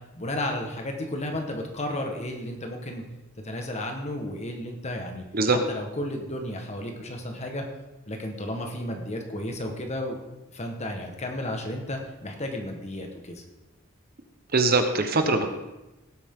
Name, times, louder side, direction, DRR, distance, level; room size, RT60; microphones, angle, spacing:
voice 1, 0.1-3.0 3.4-7.6 8.1-10.2 10.5-13.4, left 1 dB, 35° left, 3 dB, 1.5 m, -33 dB
voice 2, 14.5-15.5, right 3 dB, 45° right, 6 dB, 1.2 m, -22 dB
17.5 x 8.4 x 3.9 m, 1.0 s
head